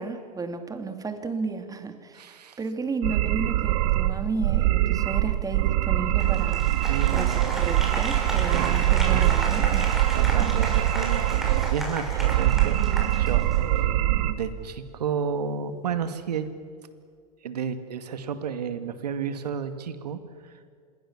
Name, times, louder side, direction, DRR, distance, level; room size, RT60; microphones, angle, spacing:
voice 1, 0.0-6.7 7.1-10.5, right 4 dB, 15° right, 7 dB, 2.9 m, -33 dB
voice 2, 2.1-2.6 6.9-7.5 10.1-12.8 13.2-16.5 17.4-20.6, right 7 dB, 85° right, 10 dB, 2.3 m, -32 dB
sound 1, 3.0-14.3, right 14 dB, 65° right, 1.5 m, -23 dB
Applause, 6.2-13.8, equal, ahead, 6.8 m, -34 dB
27.0 x 21.5 x 7.4 m, 2.1 s
hypercardioid pair, 105°, 20 cm